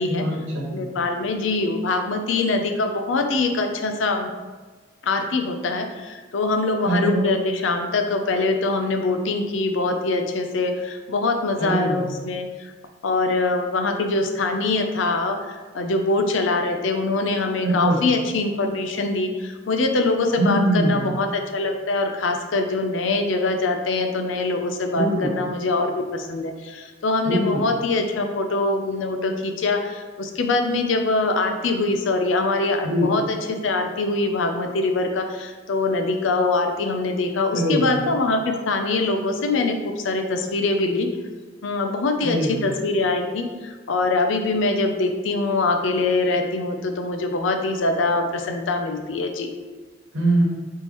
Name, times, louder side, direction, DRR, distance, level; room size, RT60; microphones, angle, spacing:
voice 1, 0.1-0.9 6.8-7.3 11.6-12.1 17.6-18.0 20.4-21.1 24.9-25.3 27.2-27.6 32.8-33.1 37.5-37.9 42.2-42.6 50.1-50.4, right 1 dB, 75° right, -2 dB, 1.2 m, -22 dB
voice 2, 0.7-4.3 5.0-12.7 13.0-41.1 41.6-49.5, left 3 dB, 75° left, 5 dB, 0.5 m, -23 dB
3.6 x 3.0 x 4.2 m, 1.4 s
head